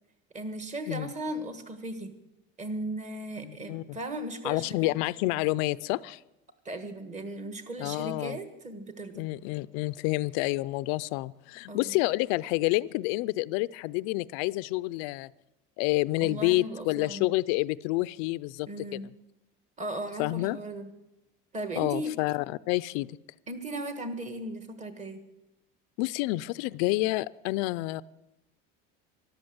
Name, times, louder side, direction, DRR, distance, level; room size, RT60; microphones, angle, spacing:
voice 1, 0.3-2.1 2.6-4.9 6.6-9.2 11.7-11.9 16.2-17.3 18.7-19.1 19.8-20.9 21.5-22.1 23.5-25.2, right 1 dB, 25° right, 9 dB, 1.5 m, -37 dB
voice 2, 3.4-3.8 4.4-6.2 7.8-8.4 9.2-15.3 15.8-19.0 20.2-20.6 21.8-23.1 26.0-28.0, left 20 dB, 90° left, 17 dB, 0.5 m, -29 dB
13.0 x 12.0 x 8.0 m, 0.93 s
cardioid pair, 165°, 30 cm